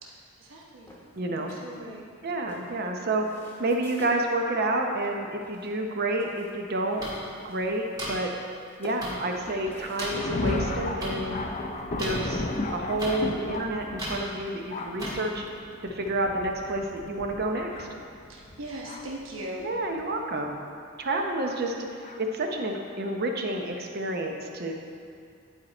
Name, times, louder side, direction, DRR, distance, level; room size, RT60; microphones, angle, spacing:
voice 1, 0.0-0.9 1.3-2.1 18.3-19.7, right 1 dB, 70° right, -2 dB, 1.1 m, -40 dB
sound 1, 0.8-2.1 2.5-4.3 4.9-5.2 5.4-6.6 6.9-7.8 8.1-8.6 8.8-10.0, left 1 dB, 10° left, 1.0 m, -48 dB
voice 2, 1.2-1.5 2.2-7.0 7.4-8.3 8.8-11.5 12.0-15.6 15.8-17.9 19.6-20.6 21.0-21.7 22.2-24.7, right 2 dB, 50° right, 3 dB, 0.8 m, -29 dB
sound 2, 7.0-7.1 8.0-8.1 9.0-9.1 10.0-10.1 11.0-11.1 12.0-12.1 13.0-13.1 14.0-14.1 15.0-15.1, right 1 dB, 20° right, 1.6 m, -33 dB
Thunder, 9.3-19.2 20.0-20.1 21.1-21.3 22.0-22.2, left 2 dB, 35° left, 0.5 m, -34 dB
10.5 x 4.4 x 4.3 m, 2.3 s
head